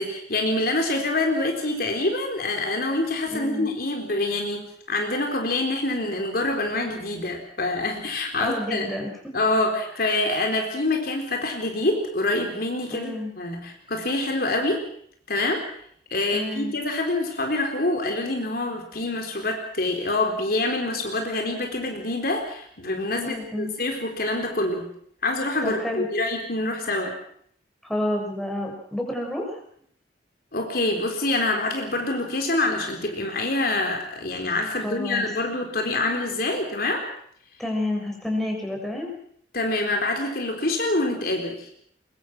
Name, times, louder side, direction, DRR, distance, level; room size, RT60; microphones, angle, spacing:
voice 1, 0.0-8.9 9.3-14.8 15.3-15.6 16.1-24.9 25.2-27.1 30.5-37.1 39.5-41.7, left 2 dB, 55° left, 3 dB, 4.0 m, -26 dB
voice 2, 3.3-3.7 8.4-9.3 12.9-13.3 16.3-16.7 23.2-23.7 25.6-26.1 27.8-29.6 34.8-35.3 37.6-39.1, left 1 dB, ahead, 0 dB, 6.6 m, -29 dB
24.0 x 22.0 x 6.2 m, 0.64 s
head